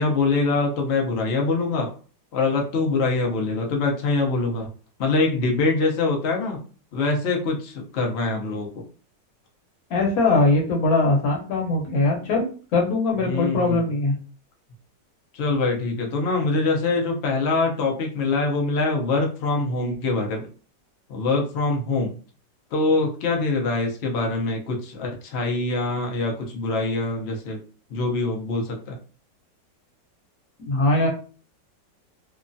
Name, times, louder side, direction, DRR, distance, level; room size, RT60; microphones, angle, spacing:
voice 1, 0.0-1.9 2.3-4.7 5.0-6.6 6.9-8.8 13.2-13.8 15.3-20.5 21.1-22.1 22.7-27.6 27.9-29.0, left 3 dB, 85° left, 1 dB, 0.5 m, -24 dB
voice 2, 9.9-14.1 30.7-31.1, left 2 dB, 60° left, 1 dB, 1.1 m, -21 dB
3.0 x 2.2 x 2.5 m, 0.39 s
omnidirectional pair, 2.0 m